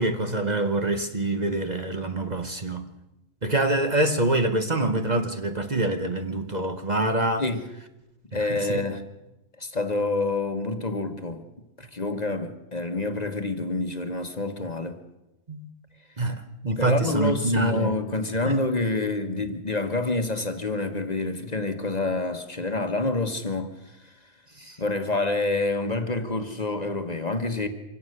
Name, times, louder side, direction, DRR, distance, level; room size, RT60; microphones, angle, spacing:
voice 1, 0.0-2.9 3.4-7.5 8.3-8.8 15.5-15.7 16.2-18.0 18.5-18.6 24.6-24.8, right 2 dB, 35° right, 1.1 m, -26 dB
voice 2, 8.3-9.0 9.6-11.4 11.8-15.0 16.8-24.2 24.8-27.7, left 3 dB, 35° left, 1.3 m, -27 dB
25.5 x 17.0 x 6.6 m
omnidirectional pair, 1.3 m